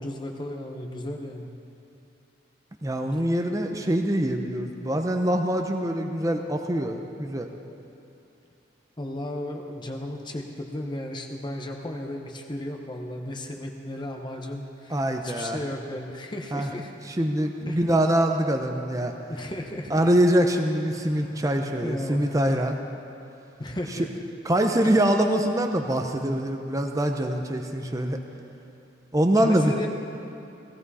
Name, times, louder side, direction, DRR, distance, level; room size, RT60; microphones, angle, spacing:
voice 1, 0.0-1.5 9.0-16.9 17.7-18.0 19.3-20.0 20.9-21.4 21.8-22.3 23.6-24.1 24.8-25.0 29.4-29.9, left 1 dB, 25° left, 2 dB, 0.9 m, -35 dB
voice 2, 2.8-7.5 14.9-15.6 16.5-16.7 17.0-19.1 19.9-22.8 23.9-24.1 24.4-28.2 29.1-29.7, right 1 dB, 20° right, 4 dB, 0.7 m, -24 dB
17.5 x 15.0 x 4.2 m, 2.7 s
head